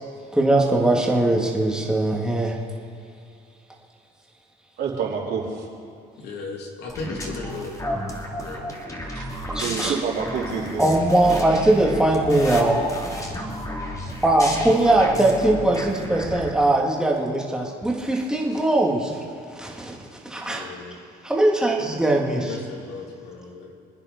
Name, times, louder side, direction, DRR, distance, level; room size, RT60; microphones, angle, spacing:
voice 1, 0.3-2.6 9.5-10.0 10.8-12.8 14.2-19.2 19.5-20.0 20.2-20.7 21.2-22.6, right 1 dB, 5° right, -1 dB, 2.5 m, -20 dB
voice 2, 4.8-5.7 9.1-9.2 9.6-11.0, right 6 dB, 70° right, -4 dB, 4.2 m, -28 dB
voice 3, 6.2-7.7 8.4-8.6 20.4-20.9 22.3-23.7, left 4 dB, 80° left, 0 dB, 2.9 m, -36 dB
sound 1, 6.9-16.5, left 1 dB, 20° left, 2.7 m, -32 dB
26.5 x 9.8 x 5.4 m, 2.5 s
cardioid pair, 110°, 17 cm